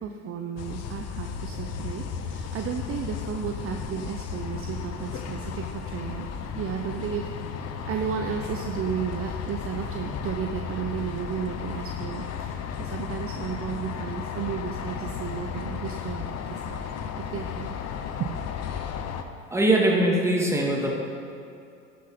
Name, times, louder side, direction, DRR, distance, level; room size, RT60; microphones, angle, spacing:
voice 1, 0.0-16.8 17.3-17.8 18.2-18.3, right 8 dB, 35° right, 4 dB, 0.7 m, -33 dB
sound 1, 0.6-19.2, left 7 dB, 40° left, 0.9 m, -34 dB
voice 2, 19.5-20.9, right 1 dB, 5° right, -2 dB, 2.2 m, -21 dB
11.5 x 6.5 x 5.6 m, 2.6 s
hypercardioid pair, 75°, 39 cm